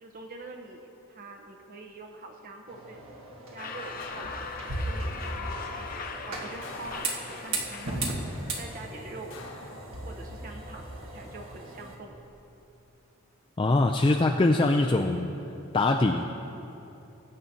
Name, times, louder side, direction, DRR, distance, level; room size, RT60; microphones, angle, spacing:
voice 1, 0.0-3.0 3.5-4.3 4.7-9.4 10.0-12.2, right 2 dB, 40° right, 2 dB, 0.7 m, -45 dB
sound 1, 2.7-11.9, right 2 dB, 75° right, 1.5 m, -37 dB
sound 2, 3.6-8.9, left 4 dB, 40° left, 0.7 m, -40 dB
sound 3, 4.0-4.8 6.6-7.6 9.3-10.4 11.8-12.4, left 3 dB, 70° left, 1.3 m, -48 dB
voice 2, 13.6-15.3 15.7-16.4, left 2 dB, 25° left, 2 dB, 0.3 m, -23 dB
20.5 x 8.8 x 2.8 m, 2.9 s
head